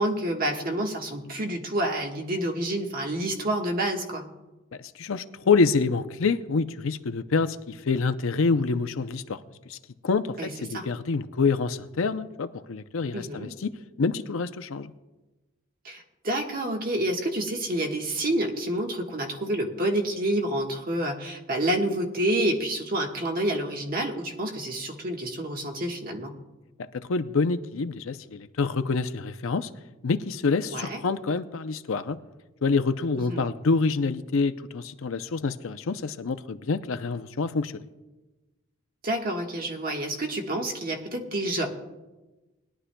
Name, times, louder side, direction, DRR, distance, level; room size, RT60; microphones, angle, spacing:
voice 1, 0.0-4.2 10.4-10.8 13.1-13.5 15.8-26.3 30.7-31.0 33.3-33.5 39.0-41.7, right 1 dB, 40° right, 2 dB, 1.4 m, -28 dB
voice 2, 4.8-9.4 9.7-9.8 10.0-13.7 14.0-14.9 26.8-29.7 30.0-32.2 32.6-37.8, left 4 dB, 70° left, 11 dB, 0.5 m, -27 dB
20.5 x 11.0 x 2.2 m, 1.1 s
head